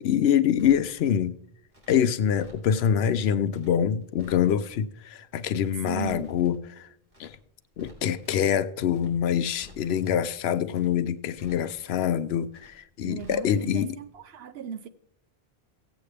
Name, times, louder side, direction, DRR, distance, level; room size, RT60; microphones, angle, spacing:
voice 1, 0.0-1.4 1.9-6.9 7.2-7.3 7.8-13.9, left 9 dB, 75° left, 0.8 m, -25 dB
Crackle, 0.6-1.2 1.7-3.0 3.5-3.7 4.0-4.8 5.3-5.5 5.8-6.6 7.1-7.3 7.6-8.4 8.9-9.1 9.4-10.2 10.7-10.9 11.2-12.0 12.5-12.7 13.0-13.8 14.0-14.2, left 1 dB, 30° right, 3.0 m, -53 dB
voice 2, 5.9-6.3 13.0-14.9, right 6 dB, 70° right, 0.9 m, -37 dB
16.0 x 8.2 x 3.3 m
omnidirectional pair, 1.1 m